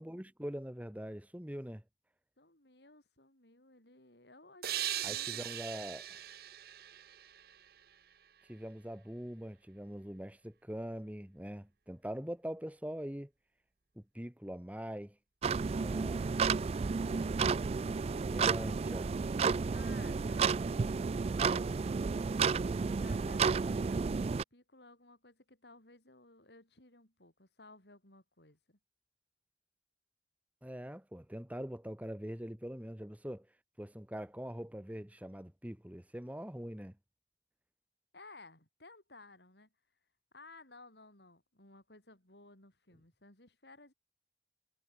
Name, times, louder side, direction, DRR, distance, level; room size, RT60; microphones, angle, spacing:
voice 1, 0.0-1.8 5.0-6.1 8.5-13.3 14.0-15.2 15.8-16.3 18.3-19.1 30.6-33.5 33.8-37.0, equal, 10° right, 1.0 m, -43 dB
voice 2, 2.4-5.5 19.7-22.3 23.0-28.8 38.1-39.7 40.3-43.9, left 3 dB, 70° left, 6.1 m, -58 dB
sound 1, 4.6-8.1, right 12 dB, 55° right, 0.9 m, -40 dB
sound 2, 15.4-24.4, right 5 dB, 35° right, 0.3 m, -32 dB
head